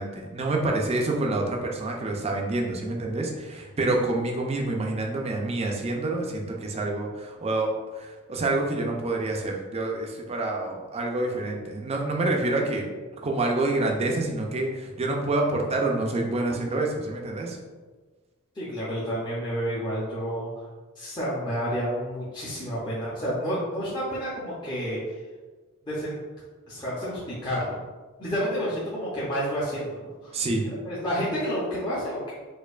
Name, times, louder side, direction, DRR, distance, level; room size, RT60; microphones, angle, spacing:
voice 1, 0.0-12.8 13.2-17.6 30.3-30.6, right 2 dB, 30° right, 0 dB, 0.4 m, -27 dB
voice 2, 18.5-20.6 21.0-25.2 25.8-26.2 26.7-27.8 28.2-30.3 30.8-32.3, equal, 20° left, -9 dB, 0.6 m, -30 dB
4.3 x 2.5 x 2.4 m, 1.3 s
head